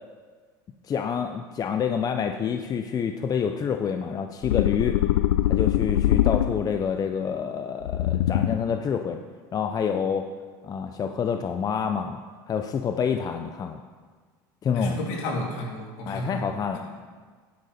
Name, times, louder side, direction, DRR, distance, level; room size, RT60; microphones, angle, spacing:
voice 1, 0.8-4.9 5.5-9.2 9.5-10.2 10.6-12.2 12.5-13.8 14.6-15.0 16.0-16.8, left 7 dB, 35° left, 6 dB, 0.7 m, -27 dB
sound 1, 4.4-6.9 7.8-8.8, left 13 dB, 85° left, 0.4 m, -23 dB
voice 2, 14.7-16.4, left 1 dB, 70° left, -1 dB, 3.4 m, -31 dB
11.0 x 10.5 x 4.3 m, 1.5 s
supercardioid pair, 90°, 11 cm